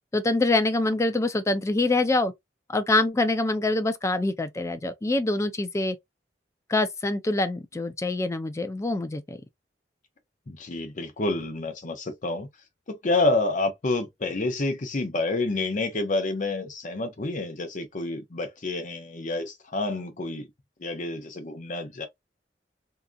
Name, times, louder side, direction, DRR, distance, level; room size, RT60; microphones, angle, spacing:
voice 1, 0.1-2.3 2.7-6.0 6.7-9.4, left 2 dB, 15° left, 0.4 m, -25 dB
voice 2, 10.5-12.5 12.9-20.5 20.8-22.1, left 2 dB, 45° left, 0.7 m, -28 dB
2.8 x 2.4 x 2.2 m
head